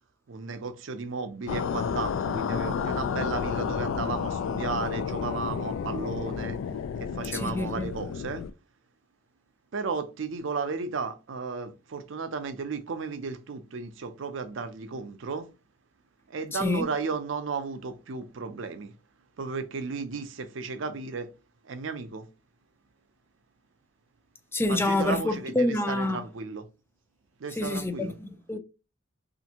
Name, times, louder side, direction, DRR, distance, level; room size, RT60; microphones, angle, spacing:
voice 1, 0.3-6.6 7.0-8.4 9.7-15.5 16.3-18.9 19.4-21.3 21.7-22.2 24.7-26.6 27.4-28.1, right 4 dB, 75° right, 0.5 m, -34 dB
sound 1, 1.5-8.5, left 7 dB, 90° left, 0.3 m, -31 dB
voice 2, 7.3-8.0 16.5-16.8 24.5-26.2 27.6-28.6, left 2 dB, 10° left, 0.4 m, -27 dB
3.4 x 2.5 x 2.8 m
head